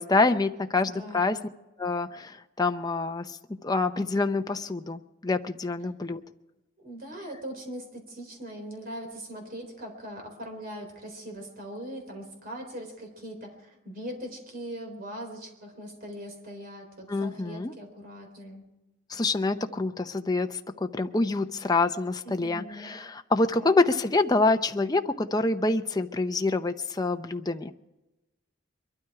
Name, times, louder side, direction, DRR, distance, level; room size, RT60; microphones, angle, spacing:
voice 1, 0.0-1.4 1.8-6.2 17.1-17.7 19.1-27.7, left 3 dB, 20° left, 6 dB, 0.6 m, -26 dB
voice 2, 0.9-1.4 6.8-18.6 22.2-23.0 23.6-23.8, equal, 45° right, 3 dB, 3.9 m, -41 dB
22.5 x 12.5 x 4.8 m, 1.0 s
head